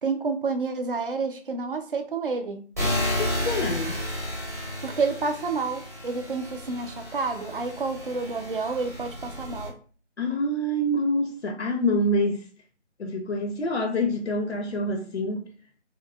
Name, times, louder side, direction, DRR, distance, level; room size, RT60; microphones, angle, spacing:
voice 1, 0.0-2.6 4.8-9.7, right 4 dB, 50° right, 0.5 m, -29 dB
sound 1, 2.8-9.7, left 1 dB, 15° right, 0.8 m, -32 dB
voice 2, 3.2-4.0 10.2-12.5 13.0-15.5, left 1 dB, 70° left, 0.6 m, -26 dB
3.6 x 2.8 x 2.2 m
figure-of-eight pair, 160°, 36 cm